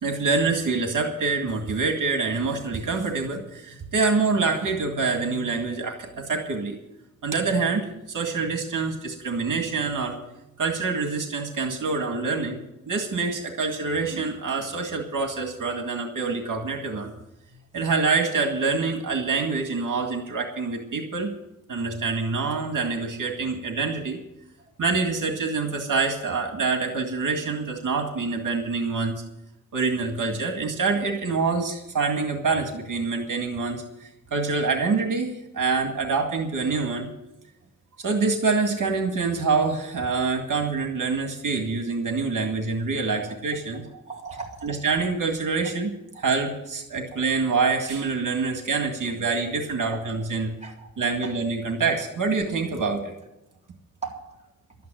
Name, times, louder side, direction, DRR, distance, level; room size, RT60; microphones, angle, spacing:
voice 1, 0.0-6.8 7.2-10.2 10.6-12.6 12.9-17.1 17.7-21.3 21.7-24.2 24.8-29.2 29.7-37.1 38.0-43.8 44.6-45.9 46.2-50.5 51.0-53.1, right 4 dB, 75° right, 4 dB, 2.0 m, -26 dB
voice 2, 43.9-44.7 46.1-46.3 49.0-49.1 49.9-50.1 50.6-50.9 51.2-51.4 54.0-54.4, right 5 dB, 20° right, -2 dB, 3.5 m, -38 dB
12.5 x 9.4 x 9.0 m, 0.88 s
wide cardioid pair, 145°, 32 cm